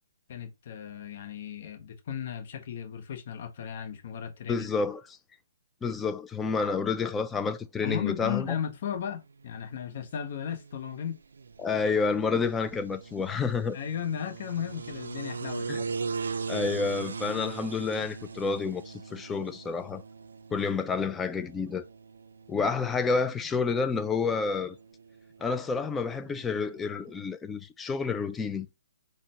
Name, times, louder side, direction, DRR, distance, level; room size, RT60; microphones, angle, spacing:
voice 1, 0.3-4.7 7.8-11.2 13.7-15.9, left 8 dB, 50° left, 0.8 m, -35 dB
voice 2, 4.5-5.0 5.8-8.5 11.6-13.8 15.7-15.8 16.5-20.0 20.5-21.8 22.5-24.8 25.4-28.7, left 4 dB, 10° left, 0.3 m, -29 dB
sound 1, 9.2-27.2, right 5 dB, 75° right, 0.3 m, -41 dB
3.9 x 2.1 x 3.3 m
hypercardioid pair, 140°, 0 cm